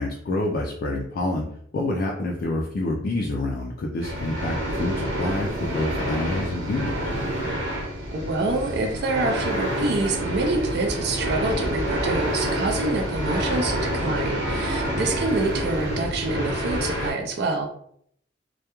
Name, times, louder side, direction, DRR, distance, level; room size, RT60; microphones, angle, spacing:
voice 1, 0.0-1.4 1.7-6.9, left 2 dB, 55° left, -1 dB, 0.3 m, -27 dB
sound 1, 4.0-17.1, right 1 dB, 80° right, 0.9 m, -28 dB
voice 2, 8.1-17.7, right 2 dB, 60° right, 3 dB, 0.4 m, -26 dB
sound 2, 10.3-16.8, equal, 5° right, 0.8 m, -37 dB
2.3 x 2.1 x 2.9 m, 0.68 s
head